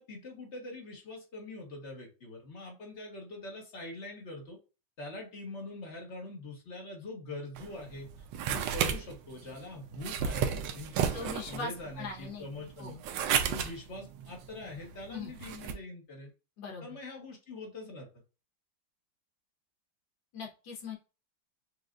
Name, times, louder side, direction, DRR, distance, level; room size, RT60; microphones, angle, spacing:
voice 1, 0.0-4.6 5.0-8.1 8.4-13.0 13.5-16.3 16.8-18.2, left 2 dB, 40° left, 0 dB, 1.4 m, -43 dB
sound 1, 7.6-15.7, right 8 dB, 80° right, 1.3 m, -34 dB
voice 2, 11.1-11.7 12.0-12.5 12.8-13.0 15.1-15.3 16.6-17.0 20.3-21.0, left 4 dB, 75° left, 0 dB, 1.9 m, -40 dB
6.3 x 2.7 x 2.5 m, 0.32 s
omnidirectional pair, 2.0 m